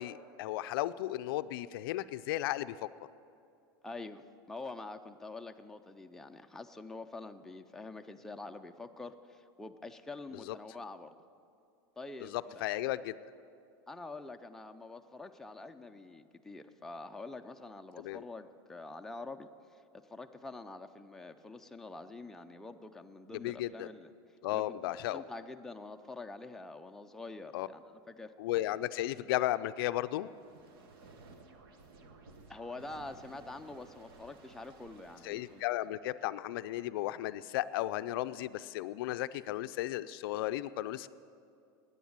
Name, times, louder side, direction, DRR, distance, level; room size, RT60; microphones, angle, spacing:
voice 1, 0.0-2.9 10.3-10.6 12.2-13.1 18.0-18.2 23.3-23.9 24.4-25.2 27.5-27.7 28.4-30.3 35.2-41.1, left 15 dB, 70° left, 14 dB, 0.4 m, -35 dB
voice 2, 3.8-11.1 12.0-12.6 13.9-24.1 24.5-28.3 32.5-35.6, left 3 dB, 5° left, 5 dB, 0.4 m, -46 dB
sound 1, 30.2-36.0, right 3 dB, 75° right, 1.3 m, -56 dB
10.0 x 9.6 x 9.5 m, 2.5 s
supercardioid pair, 130°, 12 cm